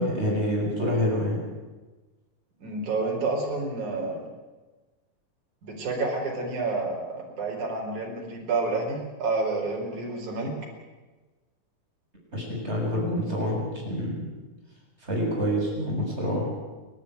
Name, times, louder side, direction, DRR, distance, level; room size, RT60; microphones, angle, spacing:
voice 1, 0.0-1.4 12.3-14.2 15.1-16.5, equal, 15° right, -3 dB, 7.6 m, -27 dB
voice 2, 2.6-4.2 5.6-10.5, right 3 dB, 60° right, 0 dB, 6.0 m, -29 dB
29.0 x 11.5 x 9.4 m, 1.2 s
omnidirectional pair, 3.9 m